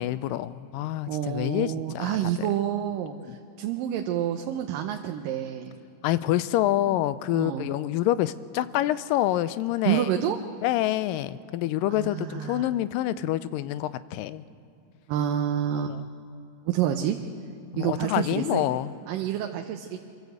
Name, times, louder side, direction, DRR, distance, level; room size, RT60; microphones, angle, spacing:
voice 1, 0.0-2.5 3.3-3.4 6.0-10.1 10.6-14.4 15.8-16.0 17.7-18.9, left 14 dB, 90° left, 15 dB, 2.3 m, -27 dB
voice 2, 1.1-5.7 7.3-7.7 9.9-10.4 11.9-12.7 15.1-16.0 16.7-17.2 17.8-18.7 19.1-20.0, right 10 dB, 85° right, 4 dB, 2.5 m, -28 dB
26.0 x 13.0 x 7.9 m, 2.7 s
omnidirectional pair, 3.8 m